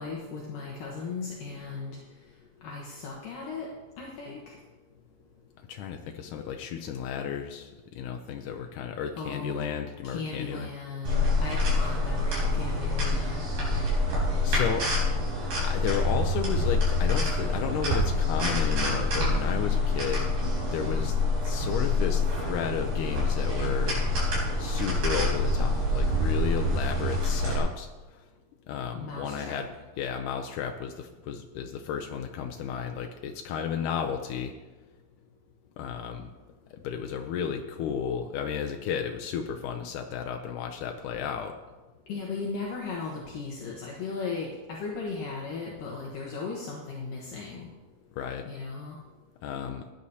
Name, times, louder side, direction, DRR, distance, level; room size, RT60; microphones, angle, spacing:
voice 1, 0.0-2.0 2.6-3.7 4.0-4.5 9.2-9.7 10.0-13.4 28.9-29.6 42.1-47.7 48.5-49.0, left 4 dB, 70° left, -2 dB, 2.6 m, -36 dB
voice 2, 5.7-10.7 13.9-14.9 15.5-20.3 20.7-21.2 21.4-24.0 24.6-28.2 28.7-29.7 30.0-34.5 35.8-36.3 36.7-41.6 48.2-48.5 49.4-49.9, left 7 dB, 90° left, 4 dB, 1.8 m, -33 dB
sound 1, 11.1-27.6, left 2 dB, 65° right, 5.3 m, -26 dB
15.5 x 9.8 x 2.8 m, 1.2 s
omnidirectional pair, 4.4 m